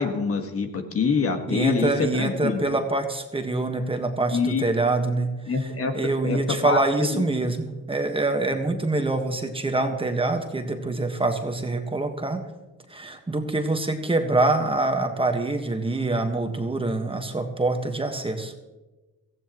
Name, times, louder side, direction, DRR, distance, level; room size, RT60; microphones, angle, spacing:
voice 1, 0.0-2.6 4.3-4.6 5.5-5.9 6.2-6.4 6.6-7.2, left 5 dB, 50° left, 5 dB, 1.7 m, -25 dB
voice 2, 1.5-5.3 5.6-12.4 12.9-18.6, right 2 dB, 20° right, 5 dB, 1.5 m, -25 dB
18.0 x 15.0 x 3.1 m, 1.1 s
cardioid pair, 90°, 30 cm